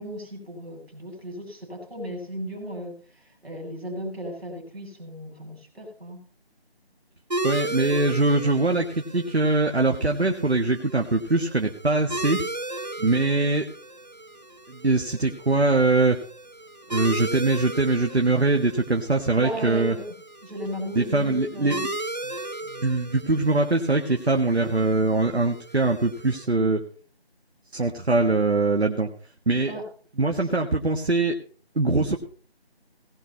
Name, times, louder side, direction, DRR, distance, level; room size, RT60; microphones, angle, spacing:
voice 1, 0.0-6.2 19.3-20.0 20.4-21.8 29.6-29.8, equal, ahead, -22 dB, 2.8 m, -35 dB
sound 1, 7.3-26.5, right 2 dB, 40° right, 1.0 m, -36 dB
voice 2, 7.4-12.4 13.0-13.7 14.7-16.2 16.9-20.0 20.9-21.8 22.2-22.3 22.7-26.8 27.7-29.1 29.5-29.7 30.2-31.4 31.7-32.2, right 3 dB, 80° right, 4 dB, 1.6 m, -22 dB
19.0 x 6.4 x 5.5 m, 0.42 s
figure-of-eight pair, 180°, 32 cm